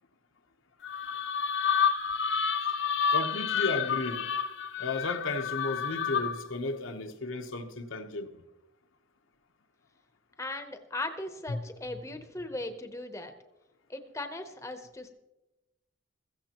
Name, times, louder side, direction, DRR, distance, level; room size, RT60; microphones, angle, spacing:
sound 1, 0.8-6.5, left 7 dB, 65° left, 0.6 m, -29 dB
voice 1, 3.1-4.3 4.8-8.4 11.5-11.6, left 2 dB, 80° left, 0.9 m, -34 dB
voice 2, 10.4-13.3 13.9-15.1, left 2 dB, 15° left, 0.7 m, -38 dB
16.5 x 14.5 x 2.9 m
head